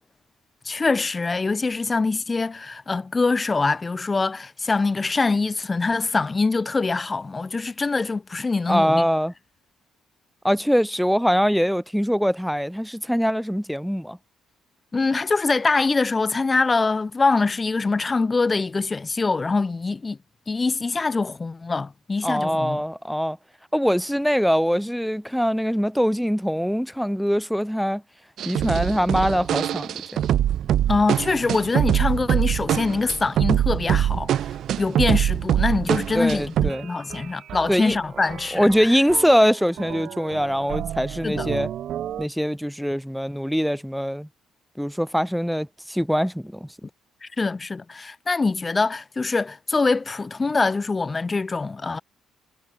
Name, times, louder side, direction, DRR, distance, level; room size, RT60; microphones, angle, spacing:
voice 1, 0.6-9.1 14.9-20.2 20.5-22.8 30.9-34.3 34.8-38.9 41.2-41.5 47.2-52.0, left 3 dB, 30° left, 3.2 m, -24 dB
voice 2, 8.7-9.3 10.4-14.2 22.2-23.4 23.7-28.0 28.4-30.3 36.1-36.9 37.7-38.0 38.5-41.7 42.2-44.3 44.8-46.7, equal, ahead, 1.4 m, -23 dB
sound 1, 28.4-36.9 37.1-37.2 37.5-39.5 39.8-42.2, right 11 dB, 65° right, 5.1 m, -25 dB
supercardioid pair, 65°, 0 cm